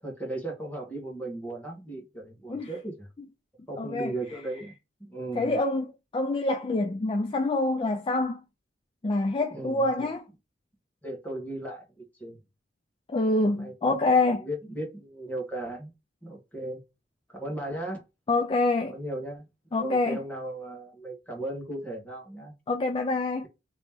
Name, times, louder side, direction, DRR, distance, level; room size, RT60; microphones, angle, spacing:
voice 1, 0.0-3.1 3.7-4.7 5.0-5.5 9.5-10.1 11.0-12.4 13.5-15.9 16.2-16.8 17.3-18.0 18.8-19.5 19.8-22.5, right 1 dB, 10° left, 1.3 m, -36 dB
voice 2, 3.8-4.1 5.4-8.4 9.0-10.3 13.1-14.4 18.3-18.9 19.7-20.2 22.7-23.5, left 2 dB, 30° left, 0.4 m, -26 dB
3.1 x 2.9 x 3.5 m
head